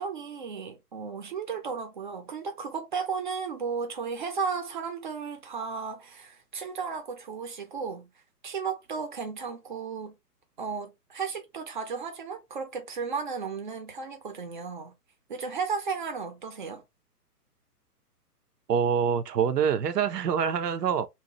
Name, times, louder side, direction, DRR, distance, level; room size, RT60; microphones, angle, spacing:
voice 1, 0.0-8.1 8.4-10.1 10.6-14.9 15.3-16.8, right 5 dB, 30° right, 0.5 m, -34 dB
voice 2, 18.7-21.1, right 7 dB, 80° right, 0.6 m, -25 dB
2.7 x 2.1 x 2.9 m
figure-of-eight pair, 125°, 48 cm